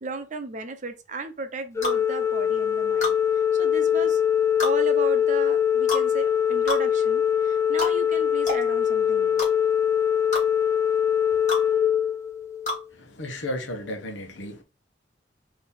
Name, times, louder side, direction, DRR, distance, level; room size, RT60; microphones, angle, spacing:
voice 1, 0.0-3.2 3.5-4.2 4.6-9.5, right 3 dB, 40° right, 0.7 m, -35 dB
sound 1, 1.8-2.0 3.0-3.2 4.6-4.8 5.9-6.1 6.7-6.8 7.8-7.9 8.5-8.6 9.4-9.5 10.3-10.5 11.5-11.6 12.7-12.8, left 2 dB, 40° left, 1.9 m, -28 dB
Organ, 1.8-12.8, left 9 dB, 15° left, 0.3 m, -23 dB
voice 2, 13.0-14.6, left 1 dB, 75° left, 1.0 m, -34 dB
3.6 x 2.9 x 4.3 m
head